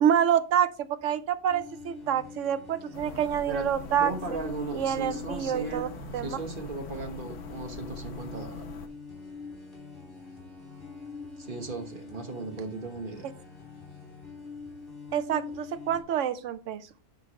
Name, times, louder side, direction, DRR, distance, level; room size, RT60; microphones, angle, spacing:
voice 1, 0.0-4.4 4.7-5.9 6.1-6.4 15.1-16.9, right 9 dB, 80° right, 12 dB, 1.0 m, -27 dB
sound 1, 1.5-16.0, left 4 dB, 45° left, 3.7 m, -45 dB
sound 2, 2.9-8.9, left 3 dB, 75° left, 1.2 m, -42 dB
voice 2, 4.0-5.9 6.2-8.6 11.4-13.3, right 2 dB, 45° right, 4 dB, 1.4 m, -36 dB
9.5 x 4.7 x 3.1 m, 0.37 s
omnidirectional pair, 1.3 m